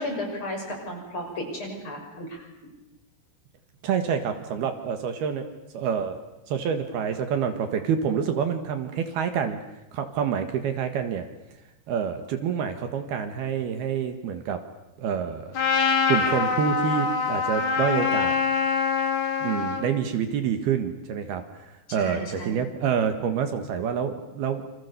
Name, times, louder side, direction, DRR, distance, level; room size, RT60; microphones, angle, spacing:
voice 1, 0.0-2.7 21.9-22.6, left 1 dB, 30° left, 2 dB, 6.8 m, -34 dB
voice 2, 3.8-5.5 5.7-6.2 6.5-9.6 9.9-11.3 11.9-14.6 15.0-15.6 16.1-18.3 19.4-24.6, right 7 dB, 70° right, 7 dB, 3.5 m, -27 dB
Trumpet, 15.5-19.8, left 5 dB, 45° left, 3.7 m, -24 dB
29.0 x 26.5 x 6.9 m, 0.98 s
omnidirectional pair, 4.9 m